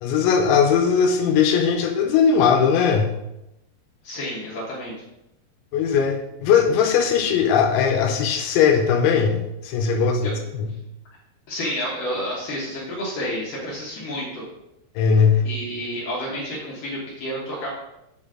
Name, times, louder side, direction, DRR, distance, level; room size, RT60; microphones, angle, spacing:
voice 1, 0.0-3.1 5.7-10.7 15.0-15.4, left 6 dB, 80° left, 3 dB, 2.9 m, -19 dB
voice 2, 4.0-4.9 10.2-10.3 11.5-14.4 15.4-17.7, equal, 60° left, -5 dB, 2.4 m, -30 dB
8.7 x 6.2 x 3.7 m, 0.89 s
omnidirectional pair, 5.5 m